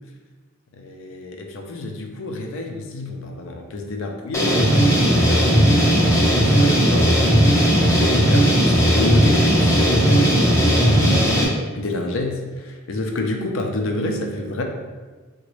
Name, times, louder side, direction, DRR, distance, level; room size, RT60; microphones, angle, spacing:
voice 1, 0.7-7.2 7.8-11.2 11.7-14.6, left 2 dB, 65° left, 3 dB, 0.4 m, -29 dB
sound 1, 4.3-11.4, equal, 15° left, 0.5 m, -16 dB
3.8 x 2.2 x 3.1 m, 1.4 s
head